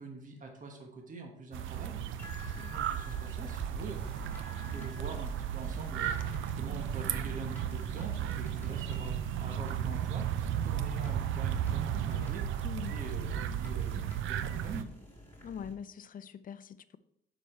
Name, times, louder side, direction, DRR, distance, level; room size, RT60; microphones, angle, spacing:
voice 1, 0.0-2.0 2.4-4.0 4.6-6.2 6.5-10.3 10.5-12.5 12.9-14.9, right 3 dB, 40° right, 1.3 m, -45 dB
sound 1, 1.5-14.8, right 10 dB, 80° right, 0.5 m, -34 dB
sound 2, 2.2-15.7, equal, 10° left, 2.3 m, -47 dB
voice 2, 12.6-13.0 15.4-17.0, left 8 dB, 45° left, 0.5 m, -43 dB
6.9 x 5.1 x 4.3 m
cardioid pair, 90°, 20 cm